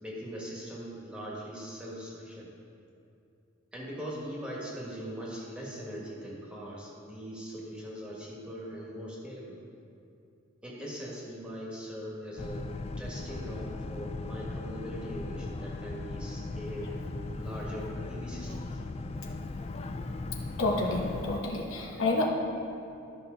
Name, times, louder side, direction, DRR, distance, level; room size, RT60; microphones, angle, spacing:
voice 1, 0.0-2.5 3.7-9.6 10.6-12.7 13.0-18.8, equal, 5° right, -5 dB, 1.6 m, -41 dB
Boat Water vehicle, 12.4-21.4, left 2 dB, 30° left, 0.3 m, -38 dB
voice 2, 20.6-22.3, left 2 dB, 75° left, -1 dB, 1.2 m, -29 dB
13.0 x 5.9 x 3.9 m, 2.7 s
head